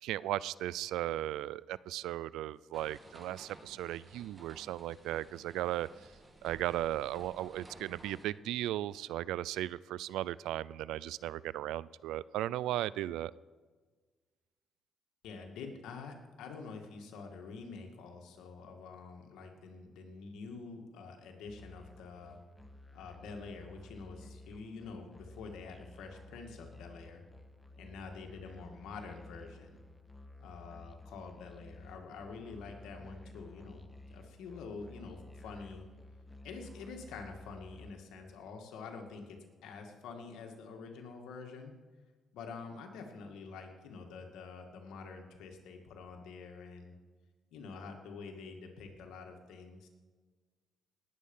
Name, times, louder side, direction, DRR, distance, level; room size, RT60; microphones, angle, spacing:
voice 1, 0.0-5.9 6.4-13.3, right 14 dB, 90° right, 20 dB, 0.3 m, -36 dB
sound 1, 2.7-8.3, right 2 dB, 25° right, 2.7 m, -56 dB
voice 2, 15.2-22.4 22.9-27.2 27.8-29.8 30.4-35.8 36.4-39.4 39.6-41.7 42.3-46.9 47.5-49.9, left 4 dB, 85° left, 3 dB, 2.2 m, -47 dB
Musical instrument, 21.5-37.9, left 2 dB, 10° left, 1.2 m, -53 dB
19.0 x 8.5 x 5.5 m, 1.4 s
cardioid pair, 90°, 0 cm